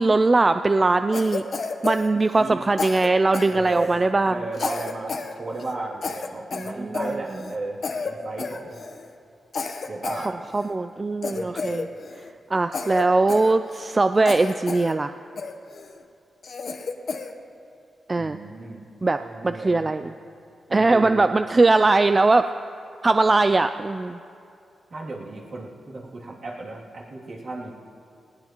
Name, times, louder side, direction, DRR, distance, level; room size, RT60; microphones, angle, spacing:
voice 1, 0.0-1.4 1.8-4.3 6.5-7.2 10.5-11.9 12.5-15.1 18.1-18.4 19.0-20.1 20.7-22.5 23.0-24.2, right 3 dB, 25° right, 10 dB, 0.3 m, -20 dB
Cough, 1.1-2.5 2.8-4.1 4.5-5.3 5.6-5.7 6.0-7.6 7.8-8.1 8.4-9.1 9.5-10.7 11.2-12.3 12.7-14.0 14.3-14.9 15.4-15.9 16.4-17.3, left 4 dB, 55° left, 0.9 m, -31 dB
voice 2, 3.5-4.0 4.2-8.8 9.9-10.4 11.3-11.8 18.2-18.8 19.2-19.9 20.7-21.2 24.9-27.7, right 2 dB, 60° right, -4 dB, 2.6 m, -34 dB
20.0 x 18.0 x 3.0 m, 2.6 s
wide cardioid pair, 115°, 0 cm